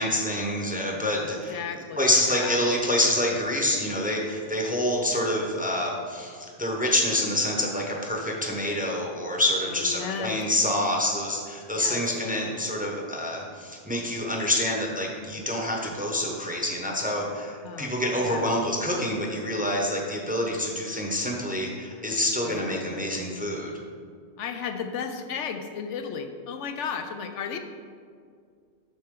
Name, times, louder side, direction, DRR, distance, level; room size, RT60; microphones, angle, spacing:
voice 1, 0.0-1.6 2.0-23.7, left 1 dB, 10° right, -1 dB, 0.8 m, -27 dB
voice 2, 1.5-2.6 9.6-10.4 11.8-12.0 17.6-18.5 22.4-22.7 24.4-27.6, left 6 dB, 75° left, 7 dB, 0.9 m, -34 dB
12.5 x 4.3 x 3.7 m, 2.1 s
omnidirectional pair, 1.3 m